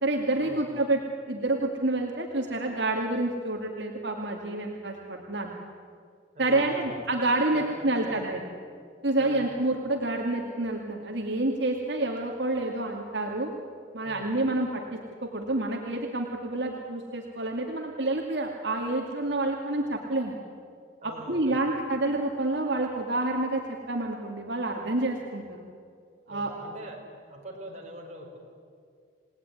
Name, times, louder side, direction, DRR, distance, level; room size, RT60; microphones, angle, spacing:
voice 1, 0.0-1.0 1.3-5.5 6.4-8.5 9.0-13.5 13.9-20.4 21.0-25.6 26.3-26.5, right 2 dB, 65° right, 1 dB, 2.3 m, -28 dB
voice 2, 6.3-6.9 7.5-8.4 9.2-9.5 14.0-14.3 21.0-21.7 26.3-27.0 27.3-28.4, right 1 dB, 35° right, -1 dB, 5.3 m, -43 dB
29.0 x 19.0 x 9.8 m, 2.2 s
head